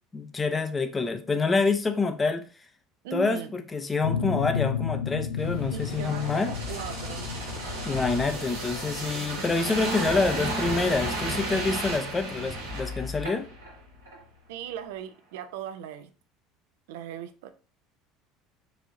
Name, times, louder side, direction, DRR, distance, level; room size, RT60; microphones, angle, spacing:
voice 1, 0.1-2.4 3.1-6.5 7.8-13.5, left 3 dB, 20° left, 0.5 m, -27 dB
voice 2, 3.0-3.5 5.7-7.3 14.5-16.1 16.9-17.5, right 9 dB, 65° right, 0.3 m, -38 dB
sound 1, 4.0-13.4, left 7 dB, 85° left, 0.5 m, -34 dB
sound 2, 5.4-13.7 14.0-14.2, right 1 dB, 80° right, 1.5 m, -33 dB
4.0 x 2.7 x 2.6 m
figure-of-eight pair, 65°, 0 cm